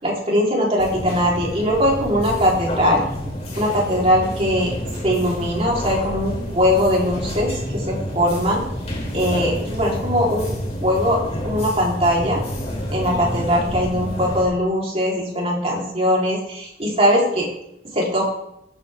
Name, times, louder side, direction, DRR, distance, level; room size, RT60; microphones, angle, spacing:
voice 1, 0.0-3.0 3.6-4.7 5.0-8.6 9.1-10.5 10.8-11.2 11.4-12.4 12.9-17.5 17.9-18.2, equal, 35° right, -3 dB, 3.7 m, -20 dB
sound 1, 0.8-14.4, equal, 40° left, 4.0 m, -29 dB
18.0 x 9.0 x 3.6 m, 0.80 s
head